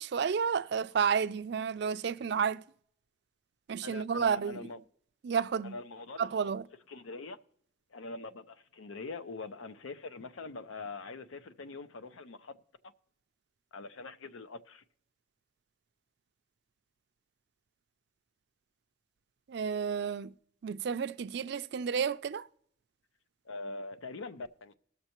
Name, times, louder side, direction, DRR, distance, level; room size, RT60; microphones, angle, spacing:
voice 1, 0.0-2.6 3.7-4.7 5.2-5.8 6.2-6.6 19.5-20.3 20.6-22.5, right 6 dB, 55° right, 0.4 m, -31 dB
voice 2, 3.8-4.8 5.6-6.3 6.9-7.4 7.9-12.6 13.7-14.8 23.5-24.7, left 3 dB, 90° left, 0.6 m, -43 dB
20.0 x 6.6 x 2.9 m
head